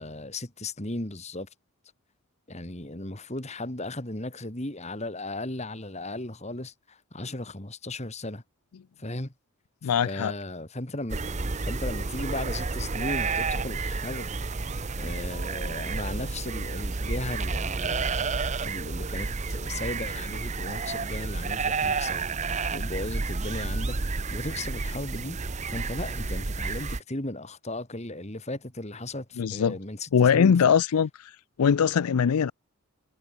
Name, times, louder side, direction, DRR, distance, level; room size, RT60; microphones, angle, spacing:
voice 1, 0.0-1.5 2.5-8.4 9.0-9.3 9.8-14.3 14.6-14.7 15.0-18.3 18.6-22.3 22.7-24.0 24.3-25.4 25.7-30.7, left 2 dB, 30° left, 2.4 m, -36 dB
voice 2, 9.8-10.3 29.4-29.8 30.1-31.3 31.6-32.5, left 7 dB, 90° left, 0.4 m, -21 dB
sound 1, 11.1-27.0, right 4 dB, 30° right, 0.7 m, -30 dB
head